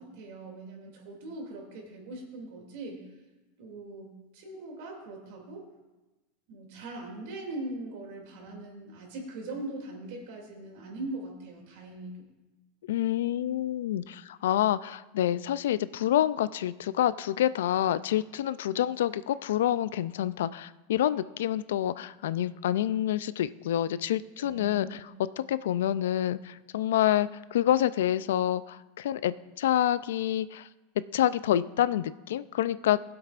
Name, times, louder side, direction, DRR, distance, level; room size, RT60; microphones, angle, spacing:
voice 1, 0.0-3.0 3.6-5.6 6.5-12.2 24.4-25.0, right 2 dB, 65° right, 1 dB, 2.6 m, -41 dB
voice 2, 12.9-30.7 31.1-33.0, left 12 dB, 90° left, 16 dB, 0.3 m, -27 dB
19.5 x 7.8 x 2.5 m, 1.1 s
supercardioid pair, 140°, 0 cm